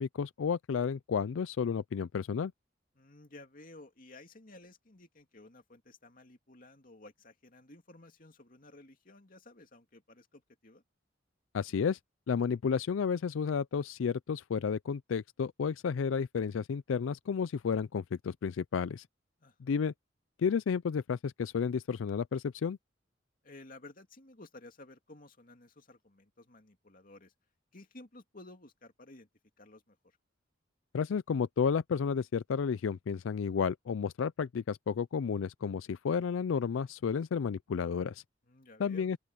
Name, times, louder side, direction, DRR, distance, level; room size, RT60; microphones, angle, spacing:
voice 1, 0.0-2.5 11.5-12.0 12.3-19.0 19.6-19.9 20.4-22.8 30.9-38.2 38.8-39.2, left 6 dB, 90° left, 0.4 m, -32 dB
voice 2, 2.9-10.8 19.4-19.9 23.4-27.3 27.7-29.3 29.6-30.2 38.4-39.1, left 2 dB, 45° left, 2.5 m, -54 dB
open air
head